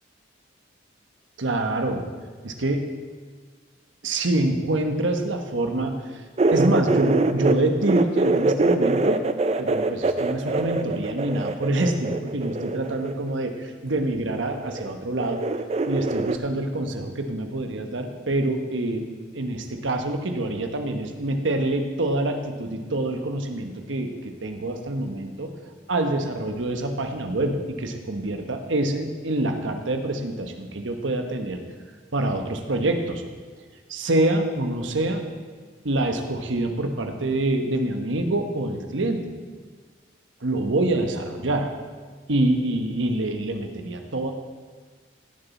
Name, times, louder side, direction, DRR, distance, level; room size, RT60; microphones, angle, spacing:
voice 1, 1.4-2.1 2.4-2.9 4.0-6.0 6.5-9.2 9.6-15.4 15.9-19.0 19.3-24.1 24.4-25.5 25.9-31.6 32.1-33.2 33.9-35.2 35.8-39.3 40.4-41.7 42.3-44.3, right 2 dB, 85° right, 5 dB, 1.1 m, -26 dB
sound 1, 6.4-7.5 7.8-13.3 14.3-14.9 15.2-16.4, right 2 dB, 35° right, 0.4 m, -24 dB
17.0 x 7.0 x 4.2 m, 1.5 s
head